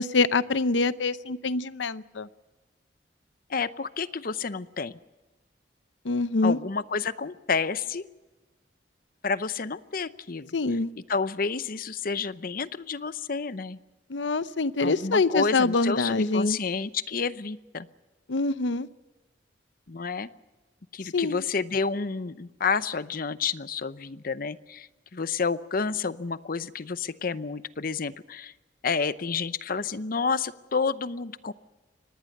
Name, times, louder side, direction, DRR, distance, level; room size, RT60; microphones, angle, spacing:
voice 1, 0.0-2.3 6.0-6.6 10.5-10.9 14.1-16.6 18.3-18.9 21.1-21.4, left 3 dB, 85° left, 15 dB, 0.7 m, -25 dB
voice 2, 3.5-5.0 6.4-8.0 9.2-10.5 11.1-13.8 14.8-17.9 19.9-20.3 20.9-28.5 28.8-31.5, left 5 dB, 50° left, 15 dB, 0.7 m, -30 dB
24.5 x 19.5 x 6.6 m, 1.2 s
head